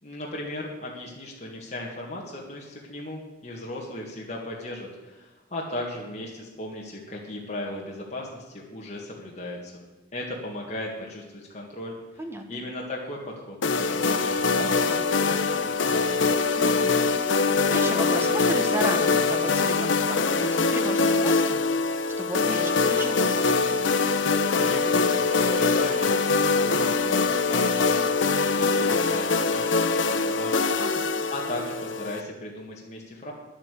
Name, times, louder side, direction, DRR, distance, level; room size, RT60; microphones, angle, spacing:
voice 1, 0.0-9.9 10.1-11.9 12.5-16.2 24.5-30.7 31.3-33.3, left 1 dB, 35° left, -2 dB, 1.9 m, -37 dB
voice 2, 12.2-12.6 16.5-23.7 30.8-31.1, right 1 dB, 15° right, 4 dB, 1.4 m, -35 dB
sound 1, 13.6-32.2, left 4 dB, 80° left, 0.8 m, -23 dB
10.5 x 8.7 x 8.3 m, 1.2 s
head